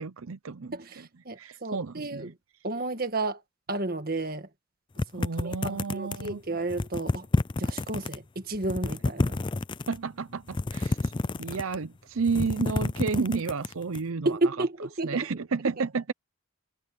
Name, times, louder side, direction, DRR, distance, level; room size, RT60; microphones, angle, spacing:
voice 1, 0.0-0.7 1.4-2.3 5.1-6.4 9.9-11.1 11.4-14.6 15.0-16.1, right 4 dB, 75° right, 0.6 m, -31 dB
voice 2, 0.7-2.3 2.6-3.4 3.7-4.5 5.1-7.3 7.6-9.4 14.3-15.3, right 2 dB, 45° right, 1.8 m, -32 dB
sound 1, 5.0-6.3 6.7-8.2 8.5-10.0 10.5-11.9 12.2-14.0, left 2 dB, 20° left, 0.3 m, -29 dB
head